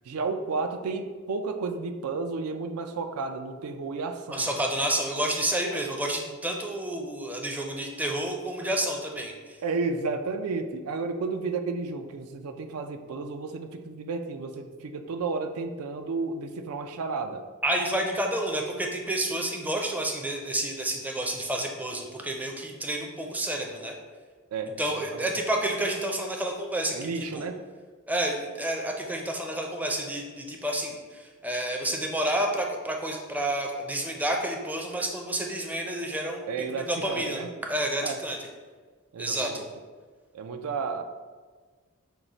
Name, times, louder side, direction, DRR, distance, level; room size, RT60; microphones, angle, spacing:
voice 1, 0.1-4.5 9.6-17.4 24.5-25.3 26.9-27.6 36.5-37.5 38.0-38.2 39.1-39.7 40.3-41.0, right 4 dB, 90° right, 7 dB, 0.4 m, -32 dB
voice 2, 4.3-9.3 17.6-23.9 24.8-27.5 28.1-36.5 36.8-38.4 39.2-39.6, right 1 dB, 10° right, 1 dB, 0.4 m, -30 dB
6.1 x 2.1 x 3.9 m, 1.5 s
head